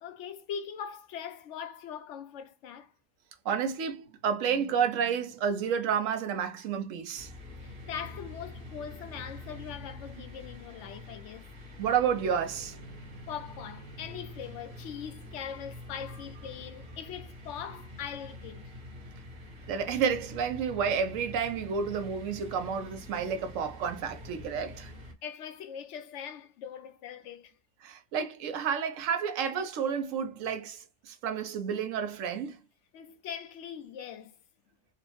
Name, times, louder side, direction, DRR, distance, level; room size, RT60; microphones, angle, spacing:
voice 1, 0.0-2.9 7.6-11.5 13.3-18.7 25.2-27.5 32.9-34.3, left 8 dB, 70° left, 0.9 m, -41 dB
voice 2, 3.4-7.3 11.8-12.8 19.7-24.9 27.8-32.6, right 7 dB, 85° right, 1.0 m, -30 dB
sound 1, 7.2-25.1, left 1 dB, 55° right, 1.2 m, -46 dB
3.1 x 2.0 x 3.0 m
omnidirectional pair, 1.3 m